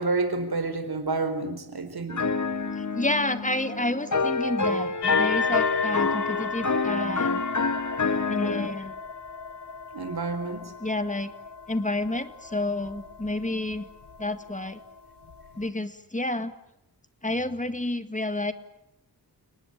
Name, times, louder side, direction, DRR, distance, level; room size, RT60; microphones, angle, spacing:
voice 1, 0.0-2.2 9.9-10.7, right 3 dB, 65° right, 9 dB, 4.5 m, -29 dB
sound 1, 2.1-8.7, left 4 dB, 45° left, 1.8 m, -27 dB
voice 2, 2.8-7.4 8.3-9.0 10.8-11.3 11.7-13.9 14.2-14.8 15.6-16.5 17.2-18.5, left 2 dB, 20° left, 10 dB, 2.0 m, -30 dB
sound 2, 5.0-15.7, left 5 dB, 80° left, 1.7 m, -35 dB
30.0 x 19.5 x 8.9 m, 0.81 s
wide cardioid pair, 65°, 40 cm